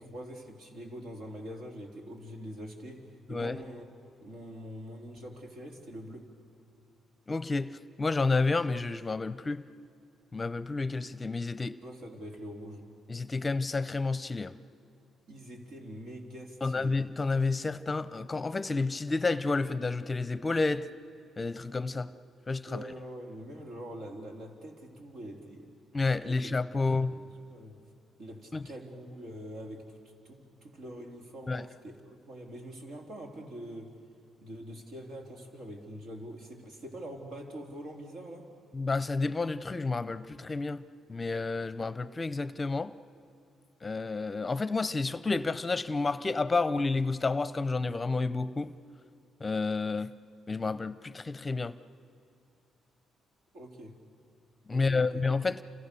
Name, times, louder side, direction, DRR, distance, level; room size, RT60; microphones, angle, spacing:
voice 1, 0.0-3.8 4.2-6.3 11.8-12.9 15.3-17.0 22.7-25.7 26.2-27.8 28.2-30.0 30.2-34.0 34.4-38.5 53.5-54.0 54.7-55.2, equal, 75° right, 2 dB, 3.6 m, -44 dB
voice 2, 7.3-9.6 10.3-11.8 13.1-14.6 16.6-20.9 21.4-22.1 22.5-22.8 25.9-27.1 28.5-28.6 31.5-31.6 38.7-40.8 41.1-42.9 43.8-48.7 49.4-50.1 50.5-51.7 54.7-55.6, left 3 dB, 25° left, 15 dB, 0.6 m, -30 dB
29.0 x 27.0 x 6.9 m, 2.3 s
cardioid pair, 90°, 0 cm